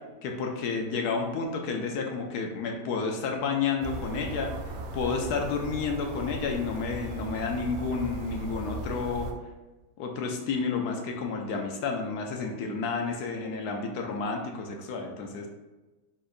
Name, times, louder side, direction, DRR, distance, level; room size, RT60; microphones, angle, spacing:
voice 1, 0.2-4.5 4.9-9.3 10.0-15.5, left 5 dB, 70° left, 2 dB, 1.0 m, -31 dB
sound 1, 3.8-9.3, right 2 dB, 85° right, 0.8 m, -37 dB
4.5 x 3.8 x 2.5 m, 1.2 s
omnidirectional pair, 2.1 m